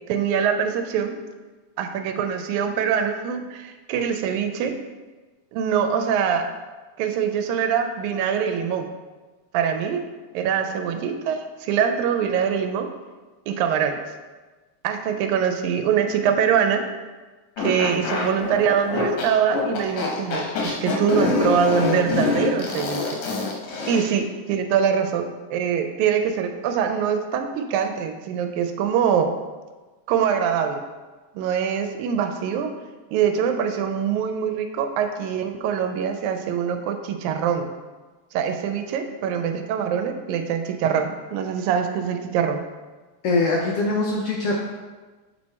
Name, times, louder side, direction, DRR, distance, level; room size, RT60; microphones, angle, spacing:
voice 1, 0.1-1.2 1.8-4.8 5.5-6.5 7.0-8.9 9.5-10.0 10.3-12.9 13.5-14.0 14.8-16.8 17.6-23.0 23.9-29.3 30.1-30.8 31.4-32.7 33.1-37.8 38.3-42.6, right 7 dB, 90° right, 6 dB, 2.0 m, -23 dB
sound 1, 17.6-24.2, left 4 dB, 90° left, 2.6 m, -25 dB
voice 2, 43.2-44.6, left 3 dB, 75° left, -2 dB, 1.4 m, -22 dB
6.9 x 4.5 x 4.2 m, 1.3 s
omnidirectional pair, 3.3 m